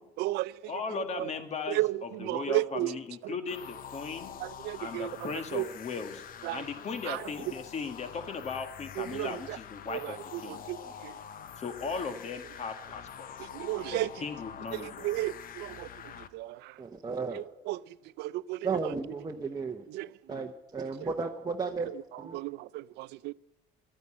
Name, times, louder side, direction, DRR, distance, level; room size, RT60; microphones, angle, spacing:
voice 1, 0.0-1.3 1.7-3.3 4.4-5.7 6.4-6.7 7.0-7.3 9.0-9.6 9.9-11.2 13.4-14.2 14.7-16.8 17.3-18.9 19.9-20.5 20.9-21.1 21.8-23.3, right 17 dB, 85° right, 0.4 m, -35 dB
voice 2, 0.7-1.8 2.2-4.3 4.8-6.2 6.5-10.2 10.4-10.6 11.6-13.5 13.9-15.1, left 5 dB, 40° left, 1.7 m, -37 dB
sound 1, 3.5-16.3, left 8 dB, 55° left, 0.8 m, -45 dB
voice 3, 16.8-17.4 18.6-19.9 20.3-21.9 22.2-22.4, right 4 dB, 20° right, 0.9 m, -34 dB
12.5 x 9.5 x 8.7 m
cardioid pair, 110°, 17 cm